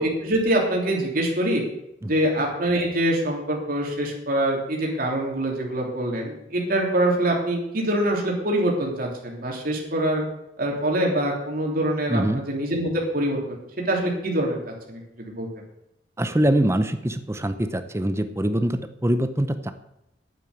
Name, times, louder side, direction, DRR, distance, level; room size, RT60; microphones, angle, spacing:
voice 1, 0.0-1.6 2.1-10.2 10.6-13.6 13.9-15.5, right 1 dB, 50° right, -1 dB, 3.3 m, -24 dB
voice 2, 12.1-12.4 16.2-19.7, right 1 dB, 15° right, 10 dB, 0.7 m, -23 dB
9.1 x 8.9 x 7.9 m, 0.84 s
head